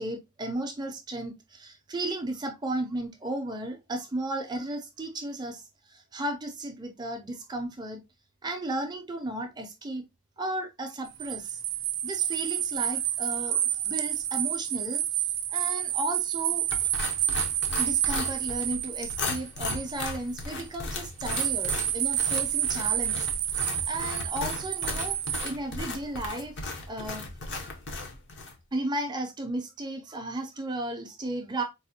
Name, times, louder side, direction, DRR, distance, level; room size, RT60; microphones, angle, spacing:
voice 1, 0.0-8.0 8.4-10.0 10.4-11.6 12.0-15.3 15.5-16.6 17.8-23.3 23.8-25.2 25.4-26.6 26.9-27.2 27.6-27.8 28.7-31.6, right 1 dB, 20° right, 0.4 m, -34 dB
sound 1, 11.1-20.3 21.2-25.5, right 11 dB, 75° right, 0.4 m, -29 dB
sound 2, 16.7-28.6, left 3 dB, 55° left, 0.7 m, -36 dB
4.1 x 2.2 x 2.7 m
head